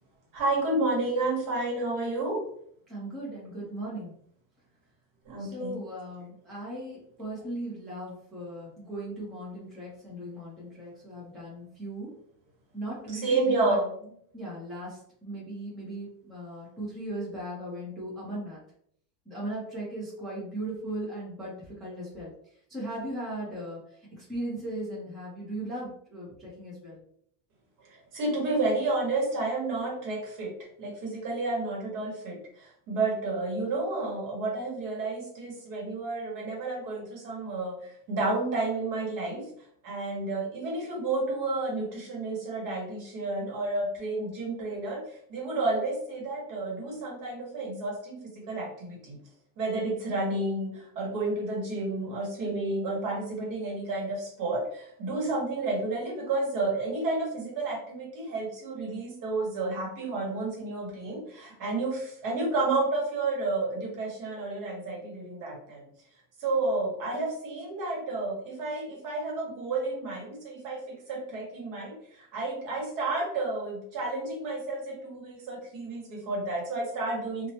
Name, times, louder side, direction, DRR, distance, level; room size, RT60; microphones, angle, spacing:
voice 1, 0.3-2.5 5.2-5.8 13.1-13.9 27.8-39.5 39.8-49.2 49.6-65.8 66.4-77.5, right 2 dB, 50° right, -1 dB, 1.0 m, -31 dB
voice 2, 2.9-4.1 5.4-12.1 12.7-13.8 14.3-18.6 19.3-22.3 22.7-27.0, right 1 dB, ahead, -9 dB, 0.6 m, -38 dB
3.1 x 2.1 x 2.8 m, 0.66 s
cardioid pair, 180°, 42 cm